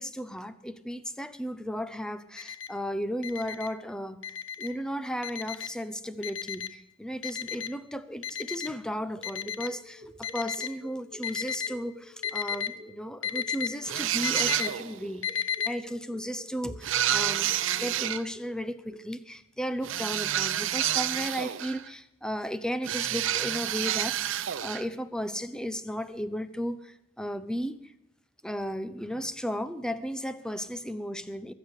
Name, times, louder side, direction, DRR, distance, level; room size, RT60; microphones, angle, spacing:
voice 1, 0.0-4.2 4.6-27.8 28.4-31.5, equal, 5° left, 0.7 m, -35 dB
Alarm, 2.4-2.7 3.2-3.7 4.2-4.7 5.2-5.7 6.2-6.7 7.2-7.7 8.2-8.7 9.2-9.7 10.2-10.7 11.2-11.7 12.2-12.7 13.2-13.7 14.2-14.7 15.2-15.7, left 8 dB, 80° left, 1.0 m, -32 dB
sound 1, 9.1-19.0, equal, 40° right, 6.0 m, -50 dB
sound 2, 13.9-15.0 16.8-18.2 19.8-21.9 22.8-24.9, right 11 dB, 80° right, 0.6 m, -29 dB
22.0 x 8.0 x 6.6 m
head